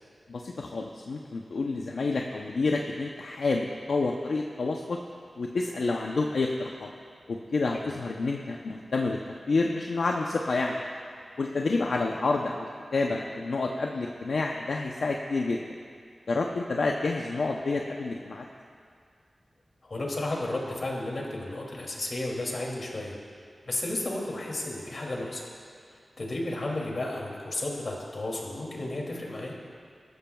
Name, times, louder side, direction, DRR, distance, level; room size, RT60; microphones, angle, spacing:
voice 1, 0.3-5.0 5.4-6.9 7.3-9.2 9.5-10.8 11.4-15.6 16.3-18.5, left 3 dB, 80° left, 1 dB, 0.7 m, -29 dB
voice 2, 19.8-23.2 23.7-25.4 25.9-29.5, left 2 dB, 60° left, -2 dB, 2.6 m, -33 dB
20.5 x 13.0 x 2.3 m, 2.3 s
wide cardioid pair, 70°, 0 cm